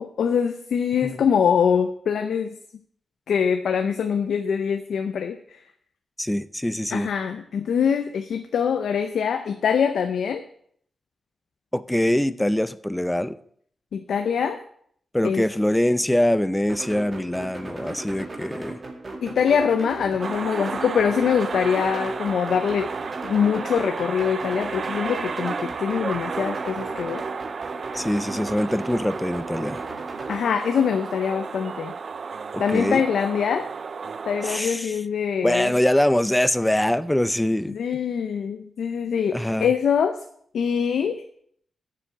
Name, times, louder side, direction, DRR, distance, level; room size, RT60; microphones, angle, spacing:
voice 1, 0.0-2.5 3.3-5.6 6.9-10.4 13.9-14.6 15.2-15.5 19.2-22.9 23.2-27.2 30.3-31.9 32.6-33.7 34.3-35.7 37.7-40.2 40.5-41.2, left 7 dB, 85° left, 7 dB, 0.6 m, -24 dB
voice 2, 6.2-7.1 11.7-13.4 15.1-18.8 27.9-29.8 32.7-33.0 34.4-34.9 35.4-37.8 39.3-39.7, left 1 dB, 10° left, 15 dB, 0.5 m, -23 dB
sound 1, 16.7-30.4, right 2 dB, 40° right, 2.1 m, -36 dB
sound 2, 20.2-34.6, right 5 dB, 55° right, 0.3 m, -33 dB
7.3 x 6.9 x 7.4 m, 0.64 s
cardioid pair, 95°, 0 cm